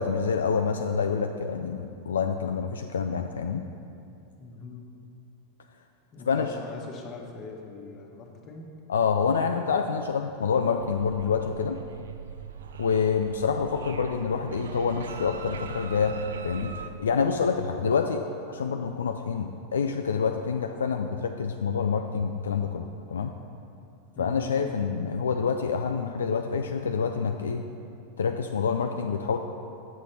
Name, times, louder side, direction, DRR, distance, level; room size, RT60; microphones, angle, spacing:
voice 1, 0.0-3.6 6.3-6.5 8.9-11.8 12.8-16.2 16.4-23.3 24.2-27.6 28.2-29.4, left 6 dB, 80° left, 5 dB, 0.3 m, -27 dB
voice 2, 4.4-5.0 6.1-8.7 24.1-24.6, left 4 dB, 40° left, 1 dB, 1.2 m, -41 dB
sound 1, 10.8-16.9, right 5 dB, 75° right, 0.4 m, -40 dB
6.9 x 6.5 x 4.4 m, 2.6 s
hypercardioid pair, 90°, 0 cm